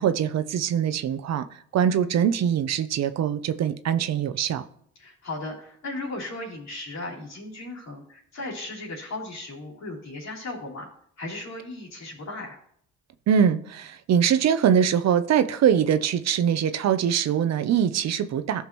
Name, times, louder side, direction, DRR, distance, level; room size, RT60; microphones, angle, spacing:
voice 1, 0.0-1.5 1.7-4.6 13.3-18.7, right 8 dB, 60° right, 0.6 m, -23 dB
voice 2, 5.0-10.9 11.2-12.6, left 2 dB, 65° left, 3.4 m, -36 dB
14.0 x 5.8 x 3.0 m
cardioid pair, 90°, 30 cm